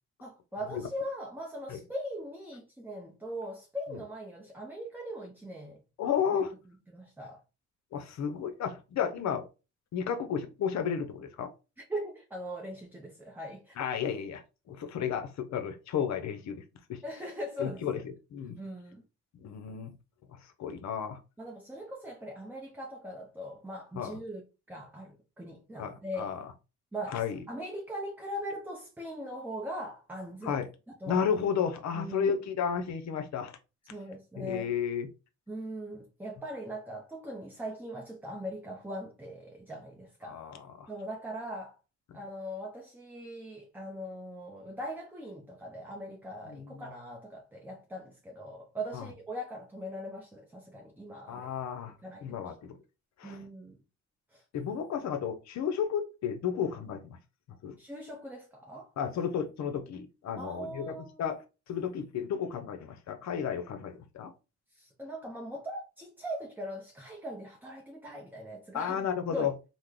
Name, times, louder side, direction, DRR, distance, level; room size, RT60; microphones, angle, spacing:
voice 1, 0.2-5.8 6.3-6.4 6.7-7.4 11.8-13.8 17.0-18.0 18.6-19.0 21.4-26.4 26.9-30.6 31.0-31.2 31.9-32.3 33.9-34.7 35.5-40.4 40.9-41.8 42.1-51.5 52.0-52.5 53.2-53.8 54.3-54.4 57.8-58.9 60.4-61.3 64.7-69.0 69.3-69.5, equal, 5° right, 0.6 m, -40 dB
voice 2, 6.0-6.5 7.9-9.5 9.9-11.5 13.8-14.4 14.7-16.6 16.9-17.0 17.6-18.0 18.3-18.6 19.3-19.9 20.4-21.2 23.9-24.2 25.8-26.5 27.1-27.4 30.4-30.7 31.1-33.5 34.4-35.1 40.2-40.9 46.5-46.7 48.9-49.1 51.3-51.9 52.2-52.8 53.2-53.4 54.5-57.2 57.6-57.8 59.0-61.4 61.7-64.3 68.7-69.5, left 7 dB, 65° left, 0.7 m, -33 dB
3.1 x 2.1 x 3.6 m
cardioid pair, 90°, 30 cm